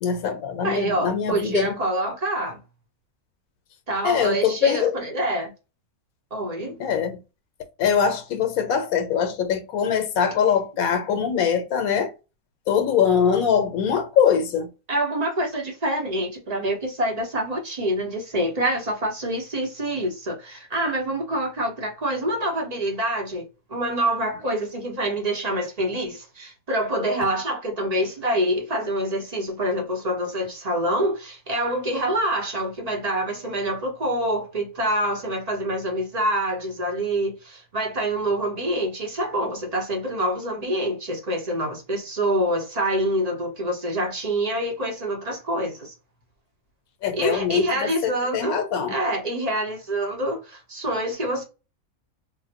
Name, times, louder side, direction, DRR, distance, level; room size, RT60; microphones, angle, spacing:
voice 1, 0.0-1.7 4.0-4.9 6.8-7.2 7.8-12.1 12.7-14.7 47.0-49.0, left 7 dB, 85° left, 1.2 m, -22 dB
voice 2, 0.6-2.6 3.9-5.5 6.3-6.8 14.9-23.4 23.7-45.9 47.1-48.6 48.9-51.4, right 1 dB, 30° right, 0.9 m, -26 dB
3.7 x 2.1 x 2.8 m
omnidirectional pair, 1.5 m